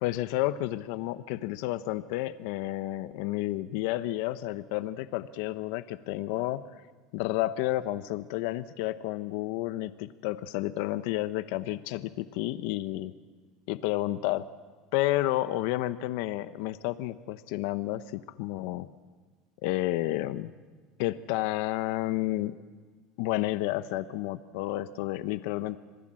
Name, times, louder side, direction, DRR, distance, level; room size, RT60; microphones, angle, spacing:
voice 1, 0.0-6.6 7.1-13.1 13.7-14.4 14.9-18.9 19.6-20.5 21.0-22.6 23.2-25.8, left 16 dB, 70° left, 12 dB, 0.9 m, -31 dB
26.0 x 20.0 x 7.6 m, 1.4 s
supercardioid pair, 135°, 0 cm